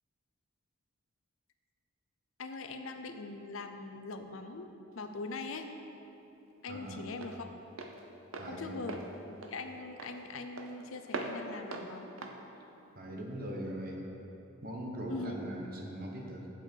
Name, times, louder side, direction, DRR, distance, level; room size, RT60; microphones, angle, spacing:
voice 1, 2.4-5.7 6.6-7.5 8.5-12.1 15.1-15.3, left 3 dB, 75° left, 7 dB, 0.6 m, -42 dB
Walk footsteps, 4.9-13.6, right 2 dB, 80° right, 0.7 m, -44 dB
voice 2, 6.7-7.0 8.4-8.8 13.0-14.1 14.6-16.5, equal, 45° right, -1 dB, 1.2 m, -40 dB
7.8 x 7.7 x 4.6 m, 3.0 s
head